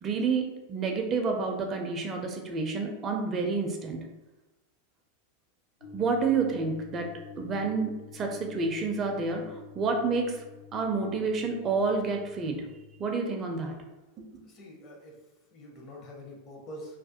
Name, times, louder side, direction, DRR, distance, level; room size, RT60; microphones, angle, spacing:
voice 1, 0.0-4.0 5.9-10.4 10.7-12.7 13.0-13.8 14.3-14.4, right 4 dB, 30° right, 3 dB, 0.4 m, -29 dB
sound 1, 5.8-13.0, left 5 dB, 80° left, 0.7 m, -48 dB
voice 2, 14.4-15.2 15.5-17.0, equal, 40° left, -1 dB, 0.7 m, -45 dB
2.4 x 2.0 x 2.7 m, 1.1 s
figure-of-eight pair, 90°, 0 cm